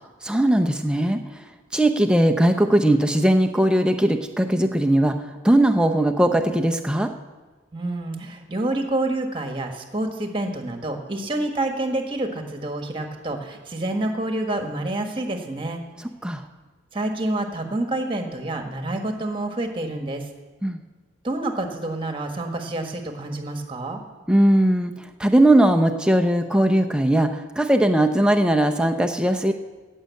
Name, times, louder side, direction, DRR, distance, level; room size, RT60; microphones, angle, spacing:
voice 1, 0.2-1.2 1.7-5.1 5.4-7.1 16.2-16.4 20.6-20.8 24.3-24.9 25.2-29.5, right 1 dB, 5° right, 5 dB, 0.7 m, -19 dB
voice 2, 7.7-15.8 16.9-20.2 21.2-24.0, right 2 dB, 25° right, 4 dB, 1.4 m, -28 dB
15.5 x 6.5 x 8.3 m, 1.3 s
head